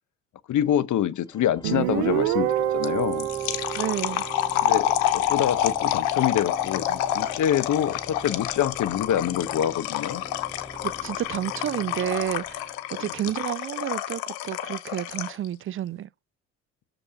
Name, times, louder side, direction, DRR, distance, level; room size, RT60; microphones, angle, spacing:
voice 1, 0.5-3.3 4.6-10.2, left 10 dB, 45° left, 0.8 m, -26 dB
Organ, 1.3-13.1, left 1 dB, 10° left, 1.6 m, -45 dB
Guitar, 1.6-5.1, right 13 dB, 85° right, 0.8 m, -27 dB
sound 1, 2.8-15.5, left 12 dB, 85° left, 0.9 m, -28 dB
voice 2, 3.8-4.2 10.8-16.1, right 12 dB, 35° right, 0.4 m, -30 dB
6.9 x 3.8 x 5.7 m
hypercardioid pair, 60°, 41 cm